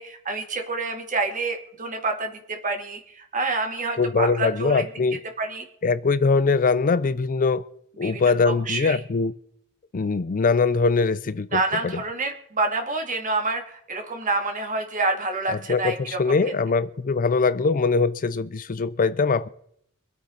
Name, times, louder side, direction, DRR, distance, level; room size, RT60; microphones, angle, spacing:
voice 1, 0.0-4.8 5.4-5.6 8.0-9.0 11.5-16.2, right 3 dB, 40° right, 2.4 m, -28 dB
voice 2, 4.0-5.2 5.8-7.6 8.0-9.3 9.9-11.9 15.5-19.5, left 4 dB, 40° left, 0.5 m, -22 dB
25.0 x 8.5 x 3.9 m
head